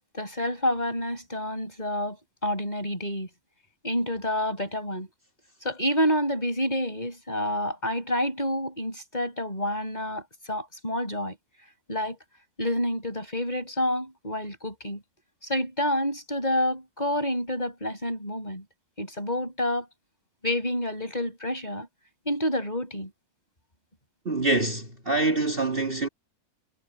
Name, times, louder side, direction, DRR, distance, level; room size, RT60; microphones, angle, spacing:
voice 1, 0.1-3.3 3.8-5.1 5.6-11.4 11.9-12.2 12.6-15.0 15.4-18.6 19.0-19.9 20.4-21.9 22.2-23.1, left 1 dB, 25° left, 6.8 m, -28 dB
voice 2, 24.2-26.1, right 2 dB, 35° right, 2.9 m, -25 dB
omnidirectional pair, 1.6 m